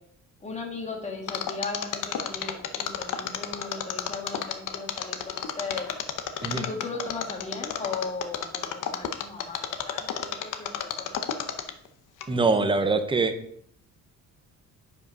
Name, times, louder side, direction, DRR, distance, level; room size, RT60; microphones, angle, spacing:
voice 1, 0.4-5.9 6.5-11.2, left 3 dB, 20° left, 1 dB, 1.6 m, -37 dB
Mechanisms, 1.3-11.9 12.2-12.3, left 9 dB, 65° left, 0.9 m, -31 dB
voice 2, 12.3-13.3, right 3 dB, 15° right, 9 dB, 0.7 m, -23 dB
9.6 x 5.3 x 5.3 m, 0.69 s
cardioid pair, 180°, 34 cm